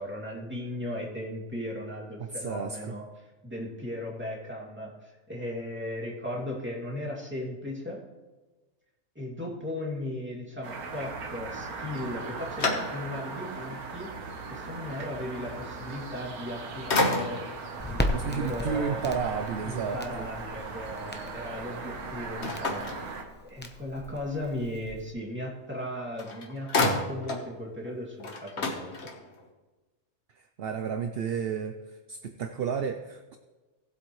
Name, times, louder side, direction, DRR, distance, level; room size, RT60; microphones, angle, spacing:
voice 1, 0.0-8.0 9.1-17.4 17.9-19.1 19.6-22.9 23.4-28.9, left 1 dB, 10° right, -4 dB, 2.5 m, -37 dB
voice 2, 2.2-3.0 18.1-20.2 30.3-33.4, right 6 dB, 60° right, 7 dB, 0.7 m, -32 dB
sound 1, 10.6-23.2, right 4 dB, 85° right, 1.6 m, -39 dB
Open and Closing Door multiple times, 11.9-13.4 13.9-14.0 16.3-16.6 16.9-17.6 22.4-23.7 25.8-25.9 26.2-27.5 27.9-28.0 28.2-29.5, left 2 dB, 50° left, 1.6 m, -30 dB
Crackle, 17.8-25.1, left 1 dB, 10° left, 0.6 m, -37 dB
18.5 x 8.1 x 3.2 m, 1.2 s
omnidirectional pair, 1.5 m